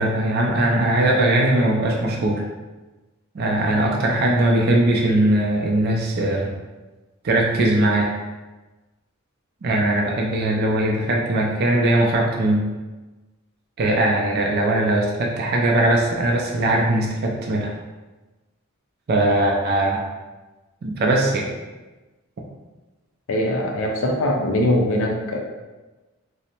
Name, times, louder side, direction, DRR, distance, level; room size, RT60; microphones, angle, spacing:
voice 1, 0.0-2.4 3.3-6.5 7.2-8.1 9.6-12.6 13.8-17.7 19.1-20.0 20.8-21.5, right 1 dB, 45° right, -1 dB, 0.3 m, -20 dB
voice 2, 23.3-25.4, left 1 dB, 65° left, 1 dB, 0.4 m, -21 dB
2.6 x 2.0 x 2.8 m, 1.2 s
head